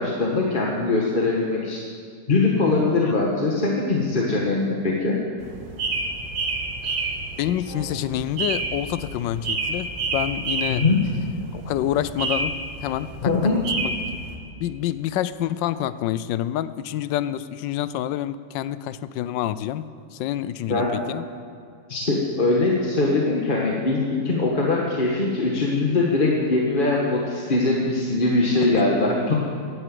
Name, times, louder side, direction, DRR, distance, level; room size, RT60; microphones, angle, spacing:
voice 1, 0.0-1.8 2.3-5.2 10.7-11.0 13.2-13.6 20.7-20.9 21.9-29.3, left 3 dB, 30° left, -2 dB, 1.3 m, -22 dB
sound 1, 5.4-14.4, right 3 dB, 90° right, 2.1 m, -30 dB
voice 2, 7.4-10.9 11.5-13.3 13.8-13.9 14.6-19.9 20.1-21.3 28.7-28.9, left 12 dB, 85° left, 15 dB, 1.3 m, -27 dB
12.0 x 11.0 x 7.6 m, 2.2 s
omnidirectional pair, 1.9 m